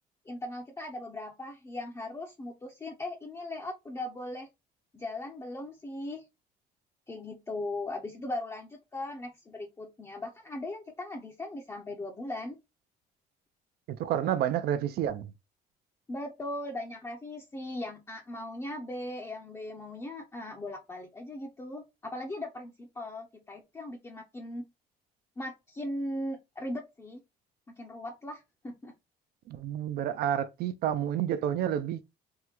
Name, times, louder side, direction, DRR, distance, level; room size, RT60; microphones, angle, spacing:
voice 1, 0.3-4.5 4.9-6.2 7.1-12.6 16.1-24.6 25.4-27.2 27.7-28.9, left 1 dB, 15° left, 0.5 m, -38 dB
voice 2, 13.9-15.3 29.5-32.0, right 10 dB, 65° right, 0.5 m, -29 dB
3.5 x 2.1 x 2.9 m
cardioid pair, 110°, 17 cm